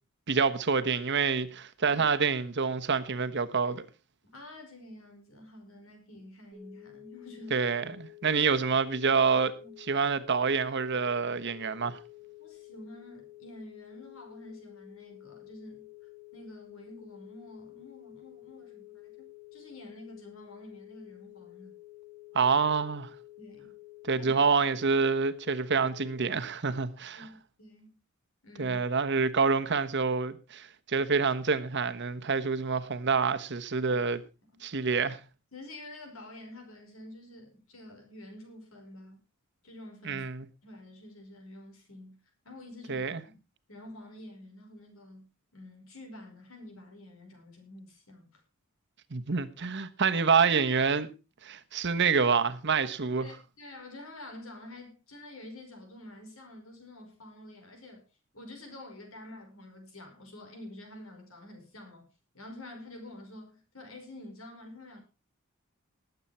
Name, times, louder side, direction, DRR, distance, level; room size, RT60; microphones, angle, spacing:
voice 1, 0.3-3.8 7.5-9.5 9.9-12.0 22.3-23.1 24.1-27.3 28.6-34.2 34.6-35.2 40.0-40.5 42.9-43.2 49.1-51.1 51.4-53.3, right 5 dB, 60° right, 1.1 m, -27 dB
voice 2, 4.2-7.6 8.2-8.5 9.6-9.7 12.4-15.9 16.3-19.3 19.5-21.7 23.4-23.7 24.2-24.3 27.1-28.0 28.4-28.8 33.9-34.1 34.5-34.6 35.5-39.2 39.6-40.2 40.6-42.2 42.4-43.4 43.7-45.3 45.5-48.4 53.2-58.0 58.3-62.1 62.3-65.0, left 1 dB, 90° left, 5.5 m, -48 dB
sound 1, 6.5-26.1, left 17 dB, 25° left, 3.3 m, -51 dB
19.5 x 8.2 x 4.3 m
head